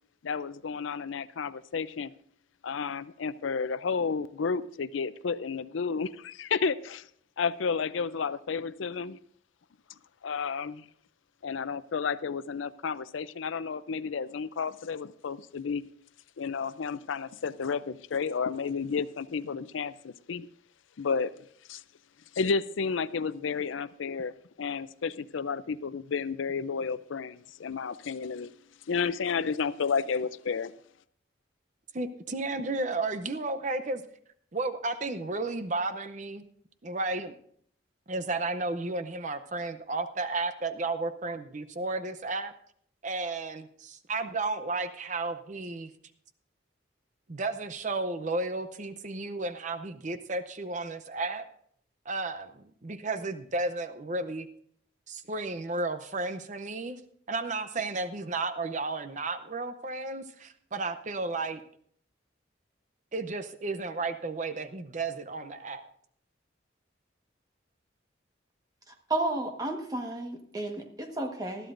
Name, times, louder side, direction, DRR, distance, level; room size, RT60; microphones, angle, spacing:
voice 1, 0.2-2.1 2.6-7.0 7.4-9.2 10.2-10.9 11.4-15.8 16.4-20.5 21.0-21.3 21.7-21.8 22.4-24.3 24.6-28.5 28.9-30.7, left 5 dB, 85° left, 15 dB, 0.5 m, -31 dB
voice 2, 31.9-34.0 34.5-36.4 36.8-37.4 38.1-42.5 43.0-45.9 47.3-51.5 52.1-54.5 55.1-57.0 57.3-61.6 63.1-65.9, right 3 dB, 40° right, 10 dB, 0.7 m, -33 dB
voice 3, 69.1-71.7, right 2 dB, 20° right, 3 dB, 1.4 m, -32 dB
20.0 x 13.0 x 2.6 m, 0.64 s
head